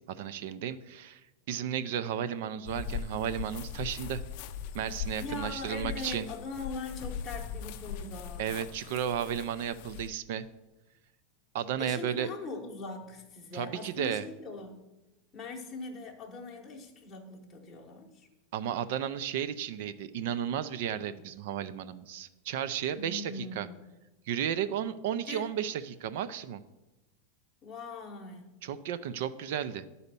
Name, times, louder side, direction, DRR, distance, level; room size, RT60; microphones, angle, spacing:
voice 1, 0.1-1.2 1.5-4.2 4.7-6.3 8.4-10.5 11.5-12.3 13.5-14.2 18.5-23.7 24.3-26.6 28.6-29.9, right 9 dB, 50° right, 13 dB, 0.4 m, -33 dB
sound 1, 2.7-10.1, left 8 dB, 45° left, 0.5 m, -40 dB
voice 2, 5.2-8.7 11.8-14.9 15.3-18.3 22.9-23.8 25.3-25.5 27.6-28.6, left 3 dB, 10° left, -2 dB, 0.9 m, -41 dB
10.0 x 4.1 x 6.8 m, 1.0 s
supercardioid pair, 175°, 0 cm